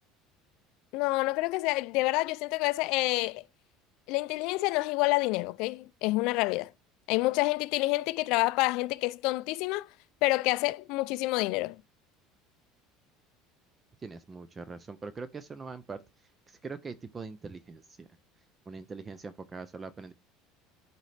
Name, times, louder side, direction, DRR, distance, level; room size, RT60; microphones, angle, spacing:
voice 1, 0.9-3.4 4.1-6.7 7.1-9.9 10.2-11.8, left 21 dB, 65° left, 0.3 m, -28 dB
voice 2, 14.0-18.1 18.7-20.1, right 4 dB, 15° right, 0.4 m, -42 dB
11.5 x 4.1 x 3.3 m
cardioid pair, 160°, 0 cm